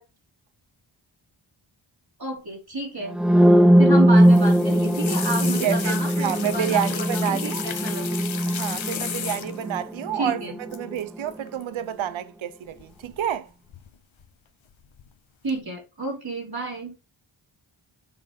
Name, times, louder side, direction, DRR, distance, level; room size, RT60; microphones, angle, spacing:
voice 1, 2.2-3.1 3.8-8.1 10.1-10.6 15.4-16.9, right 2 dB, 50° right, 3.5 m, -31 dB
sound 1, 3.1-10.9, equal, ahead, 0.3 m, -20 dB
sound 2, 4.2-9.8 10.7-11.0 11.3-11.6 12.8-13.4 13.7-14.3 14.7-15.1 15.5-15.6, left 8 dB, 70° left, 0.9 m, -34 dB
voice 2, 5.4-7.6 8.5-10.4 10.7-13.5, right 10 dB, 70° right, 0.7 m, -29 dB
7.0 x 3.4 x 5.0 m
cardioid pair, 65°, 48 cm